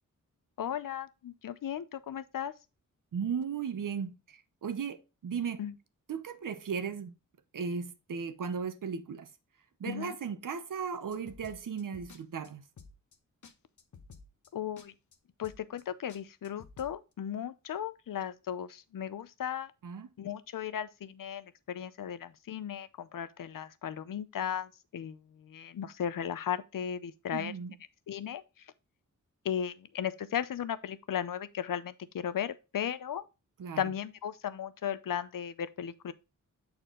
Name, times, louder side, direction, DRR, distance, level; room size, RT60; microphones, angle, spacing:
voice 1, 0.6-2.5 5.6-5.7 9.9-10.2 14.5-14.9 15.4-19.7 20.2-27.5 28.1-28.4 29.4-33.2 33.8-36.1, left 9 dB, 80° left, 0.7 m, -36 dB
voice 2, 3.1-5.6 6.1-7.1 7.5-9.3 9.8-12.6 19.8-20.1 27.3-27.8 33.6-33.9, right 6 dB, 75° right, 0.9 m, -36 dB
sound 1, 11.1-12.2 12.4-12.5 12.8-13.2 13.4-13.5 13.8-14.5 14.8-14.9 15.1-15.2 15.4-15.8 16.1-16.9, left 5 dB, 65° left, 1.0 m, -52 dB
8.3 x 4.4 x 3.7 m
wide cardioid pair, 175°, 32 cm